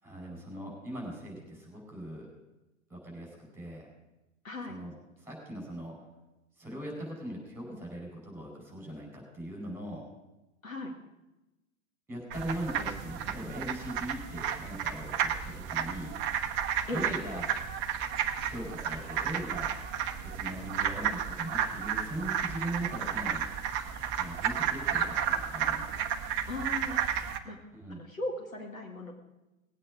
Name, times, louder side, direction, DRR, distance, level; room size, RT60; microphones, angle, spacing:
voice 1, 0.0-2.3 2.9-3.9 4.7-4.9 5.2-6.0 6.6-10.1 12.1-16.2 16.9-17.4 18.4-19.7 20.2-23.5 24.2-26.0 27.7-28.0, right 1 dB, 5° right, -1 dB, 5.2 m, -40 dB
voice 2, 4.4-4.8 10.6-10.9 16.9-17.1 26.5-27.6 27.9-29.1, left 1 dB, 80° left, 3 dB, 2.1 m, -38 dB
sound 1, 12.3-27.4, right 8 dB, 30° right, 0.9 m, -32 dB
19.0 x 8.9 x 4.9 m, 1.0 s
figure-of-eight pair, 95°, 40 cm